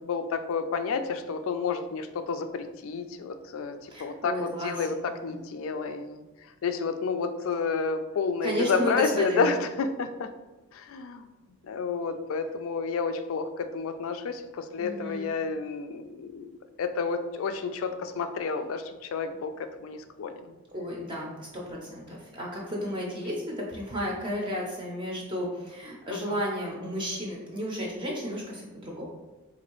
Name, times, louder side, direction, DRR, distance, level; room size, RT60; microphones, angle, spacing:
voice 1, 0.0-6.2 6.6-10.3 10.7-11.3 11.7-16.5 16.8-19.5 19.8-20.4 26.1-26.4, left 5 dB, 65° left, 9 dB, 0.3 m, -30 dB
voice 2, 3.9-5.3 8.4-9.5 14.8-15.3 20.7-29.0, equal, 20° right, -3 dB, 0.6 m, -33 dB
4.0 x 2.6 x 3.0 m, 1.1 s
head